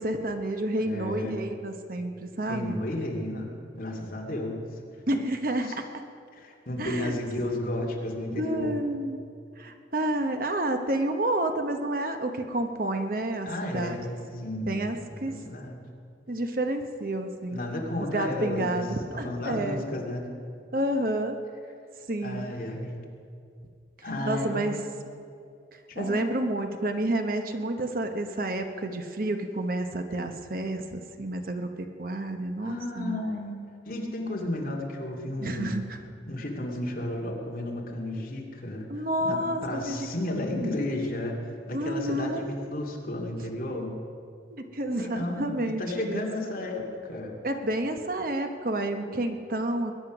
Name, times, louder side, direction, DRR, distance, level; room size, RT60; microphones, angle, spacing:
voice 1, 0.0-2.8 5.1-5.9 6.8-7.1 8.4-9.2 9.6-15.3 16.3-17.6 18.0-19.8 20.7-21.4 22.1-22.5 24.2-24.8 26.0-33.2 35.4-36.0 38.9-40.1 40.5-40.8 41.7-42.5 44.5-46.2 47.4-49.9, right 1 dB, 50° right, 6 dB, 1.0 m, -30 dB
voice 2, 0.8-1.4 2.5-3.5 3.7-4.6 5.6-5.7 6.3-8.8 13.4-14.9 15.2-15.8 17.5-18.9 19.1-20.2 22.2-23.0 24.0-24.7 26.0-26.2 32.6-33.6 33.9-35.8 36.3-38.9 39.2-41.4 41.7-43.9 45.0-47.4, left 1 dB, 50° left, -1 dB, 2.3 m, -33 dB
21.5 x 9.7 x 6.1 m, 2.4 s
head